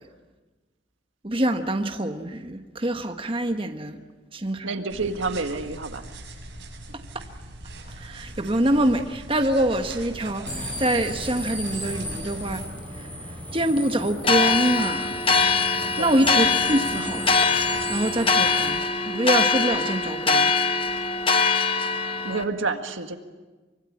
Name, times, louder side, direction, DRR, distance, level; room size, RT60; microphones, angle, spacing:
voice 1, 1.2-4.0 4.3-4.7 8.0-12.6 12.9-13.1 13.5-15.2 16.0-17.4 17.9-20.5, right 1 dB, 25° right, 1.3 m, -25 dB
voice 2, 4.6-6.1 6.9-7.0 16.0-16.2 21.5-23.2, right 3 dB, 85° right, 1.8 m, -30 dB
sound 1, 4.9-12.7, right 1 dB, 65° right, 6.1 m, -41 dB
sound 2, 10.5-18.7, equal, 10° left, 6.0 m, -35 dB
sound 3, 14.2-22.4, left 4 dB, 30° left, 1.2 m, -23 dB
24.5 x 24.0 x 8.7 m
head